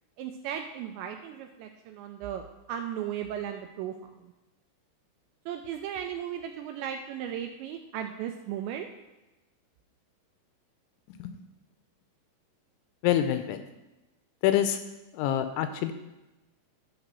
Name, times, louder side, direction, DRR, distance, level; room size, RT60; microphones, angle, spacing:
voice 1, 0.2-3.9 4.2-4.3 5.5-8.9, right 9 dB, 85° right, 5 dB, 2.6 m, -36 dB
voice 2, 13.0-13.6 14.4-14.8 15.1-15.9, left 11 dB, 85° left, 9 dB, 2.8 m, -26 dB
11.0 x 4.0 x 6.7 m, 1.0 s
omnidirectional pair, 5.6 m